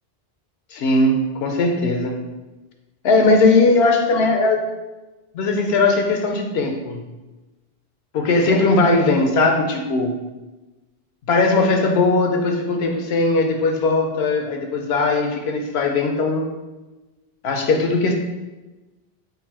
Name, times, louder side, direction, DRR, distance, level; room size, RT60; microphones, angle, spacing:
voice 1, 0.7-2.3 3.0-4.6 5.3-7.0 8.1-10.2 11.3-16.5 17.4-18.1, left 3 dB, 85° left, 4 dB, 0.8 m, -19 dB
4.0 x 2.2 x 4.1 m, 1.1 s
omnidirectional pair, 1.0 m